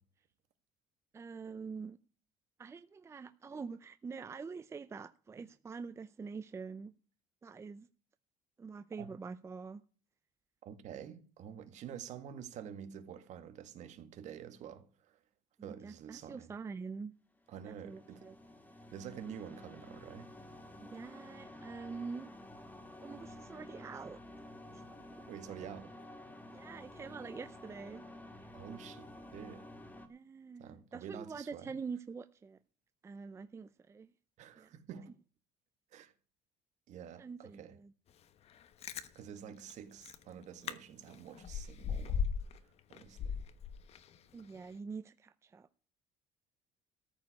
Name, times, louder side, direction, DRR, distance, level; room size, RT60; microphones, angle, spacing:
voice 1, 1.1-2.0 2.6-6.9 7.4-7.9 8.6-9.8 15.6-17.1 17.7-18.4 20.8-22.3 23.0-24.2 24.7-24.8 25.2-25.3 26.5-28.1 28.4-28.5 30.1-32.6 33.0-34.1 34.6-34.7 37.2-37.9 44.3-45.7, right 5 dB, 20° right, 0.5 m, -45 dB
voice 2, 10.6-15.2 15.6-16.5 17.5-18.3 18.9-20.3 25.3-25.9 28.5-29.7 30.6-31.8 34.4-35.1 35.9-36.1 36.9-37.8 39.1-42.3 42.6-43.4, right 8 dB, 55° right, 1.7 m, -48 dB
sound 1, 17.4-30.1, left 1 dB, 10° left, 1.7 m, -52 dB
Chewing mastication, 38.6-39.1 39.7-39.8 40.0-40.2 40.6-40.7 41.1-42.6 42.9-44.2 44.5-44.6, left 7 dB, 45° left, 1.1 m, -37 dB
14.0 x 5.1 x 9.3 m
cardioid pair, 120°, 14 cm